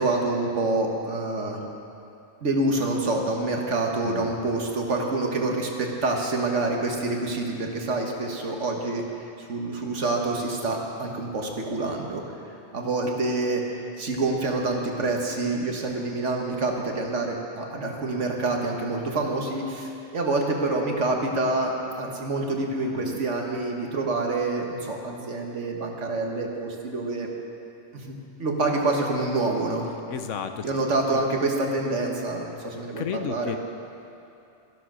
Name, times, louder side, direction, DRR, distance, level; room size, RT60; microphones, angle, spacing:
voice 1, 0.0-1.6 2.4-12.2 12.7-13.6 14.0-27.3 27.9-29.9 30.6-33.6, right 2 dB, 80° right, 1 dB, 1.8 m, -27 dB
voice 2, 22.9-23.2 30.1-30.6 31.1-31.2 33.0-33.6, left 8 dB, 90° left, 8 dB, 1.1 m, -33 dB
13.0 x 11.5 x 6.3 m, 2.7 s
omnidirectional pair, 1.2 m